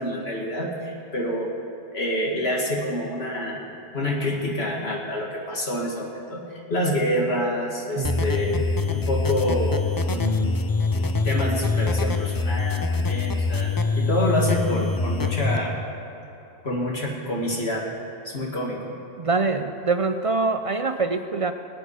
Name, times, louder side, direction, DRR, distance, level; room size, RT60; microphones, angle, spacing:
voice 1, 0.0-1.5 1.9-3.6 3.9-8.6 8.9-10.6 10.9-15.7 16.6-17.8 18.2-19.0, left 1 dB, 70° left, -2 dB, 2.5 m, -27 dB
sound 1, 8.0-15.6, left 3 dB, 30° left, 0.4 m, -24 dB
voice 2, 8.0-8.6 19.2-21.5, right 4 dB, 45° right, 8 dB, 0.5 m, -25 dB
21.0 x 8.9 x 5.0 m, 2.9 s
omnidirectional pair, 1.1 m